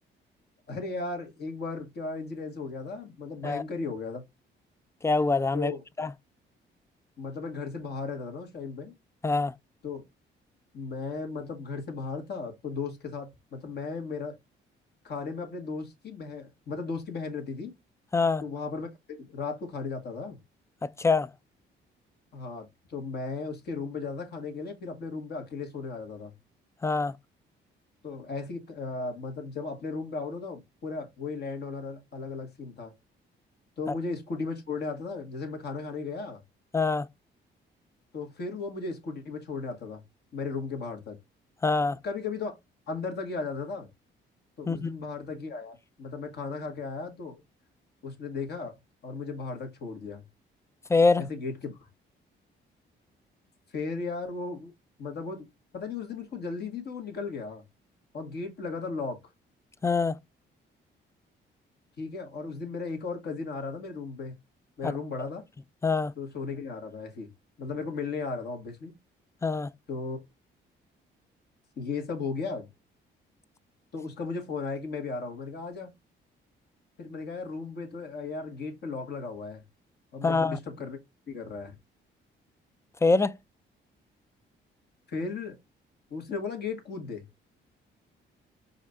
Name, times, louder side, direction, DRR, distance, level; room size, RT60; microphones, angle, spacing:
voice 1, 0.7-4.2 5.5-5.8 7.2-8.9 9.8-10.0 10.7-14.4 15.0-17.7 18.4-20.4 22.3-26.3 28.0-32.9 33.8-36.4 38.1-40.0 40.3-41.2 42.0-42.6 42.9-43.9 44.6-47.4 48.0-48.8 49.0-50.2 51.2-51.8 53.7-54.7 55.0-55.5 55.7-57.6 58.1-59.2 62.0-64.3 64.8-65.4 66.2-67.3 67.6-68.9 69.9-70.2 71.8-72.7 73.9-75.9 77.0-79.6 80.1-81.0 81.3-81.8 85.1-85.5 86.1-87.3, left 4 dB, 55° left, 1.8 m, -36 dB
voice 2, 5.0-5.7 6.0-6.1 9.2-9.5 18.1-18.4 21.0-21.3 26.8-27.2 36.7-37.1 41.6-42.0 44.7-44.9 50.9-51.2 59.8-60.2 64.8-64.9 65.8-66.1 69.4-69.7 80.2-80.6 83.0-83.4, left 3 dB, 15° left, 0.3 m, -24 dB
4.8 x 2.7 x 3.5 m
cardioid pair, 90°, 20 cm